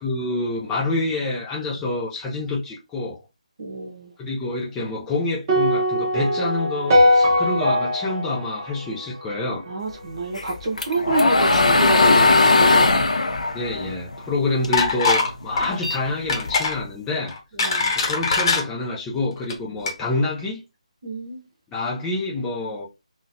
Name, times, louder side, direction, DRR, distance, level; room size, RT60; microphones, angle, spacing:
voice 1, 0.0-3.2 4.2-9.6 13.5-17.3 17.9-20.6 21.7-22.9, left 2 dB, 10° left, 0.6 m, -27 dB
voice 2, 3.6-4.1 9.7-12.9 17.5-17.9 21.0-21.4, right 2 dB, 50° right, 1.2 m, -28 dB
sound 1, 5.5-9.8, left 1 dB, 30° right, 1.1 m, -21 dB
sound 2, 10.4-14.9 15.3-16.8, left 3 dB, 75° left, 0.7 m, -18 dB
Wooden Coasters Falling, 14.7-15.3 15.6-15.8 16.3-16.8 17.3-18.6 19.4-19.5 19.9-20.0, left 4 dB, 40° left, 1.0 m, -21 dB
3.9 x 2.4 x 2.7 m
figure-of-eight pair, 155°, 4 cm